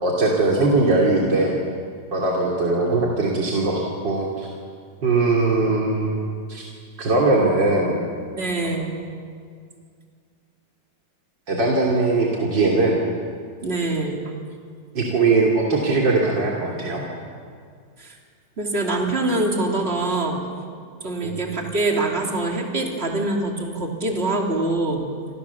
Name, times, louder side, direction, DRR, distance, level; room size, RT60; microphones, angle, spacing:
voice 1, 0.0-1.6 2.1-4.5 5.0-6.2 6.5-6.6 7.0-8.0 11.5-13.0 15.0-17.0 21.2-21.4, right 3 dB, 90° right, -3 dB, 3.7 m, -20 dB
voice 2, 8.4-8.9 13.6-14.2 18.0-18.2 18.6-20.4 21.0-25.1, right 2 dB, 35° right, 0 dB, 3.3 m, -24 dB
28.5 x 26.5 x 7.1 m, 2.1 s
omnidirectional pair, 1.9 m